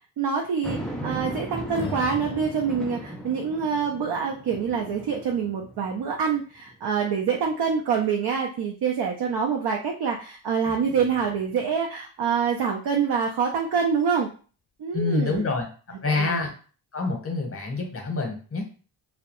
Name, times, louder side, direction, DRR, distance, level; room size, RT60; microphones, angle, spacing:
voice 1, 0.2-14.3 14.8-15.4 16.1-16.5, right 6 dB, 55° right, 1 dB, 0.5 m, -26 dB
sound 1, 0.6-6.2 6.7-6.8 10.7-11.7, right 1 dB, ahead, 0.3 m, -37 dB
Strum, 1.7-6.1, left 6 dB, 80° left, 0.5 m, -43 dB
voice 2, 14.9-15.6 16.0-16.5 16.9-18.6, left 3 dB, 30° left, 1 dB, 0.9 m, -26 dB
2.2 x 2.0 x 2.9 m, 0.39 s
cardioid pair, 65°, 47 cm